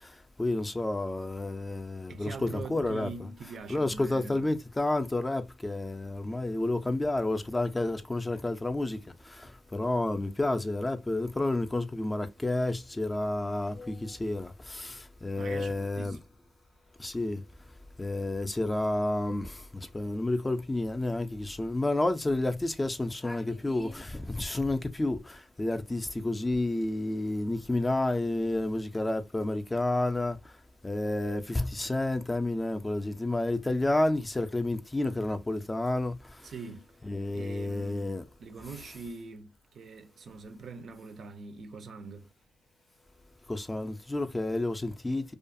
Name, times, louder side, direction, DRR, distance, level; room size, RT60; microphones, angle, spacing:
voice 1, 0.4-3.3 3.7-9.0 9.7-16.2 17.0-17.4 18.0-30.4 30.8-36.1 37.0-38.2 43.5-45.3, left 2 dB, 15° left, 0.4 m, -30 dB
voice 2, 2.1-4.6 15.3-16.2 36.4-36.9 37.3-38.1 38.4-42.3, right 4 dB, 55° right, 0.5 m, -43 dB
2.4 x 2.3 x 2.6 m
cardioid pair, 90°, 0 cm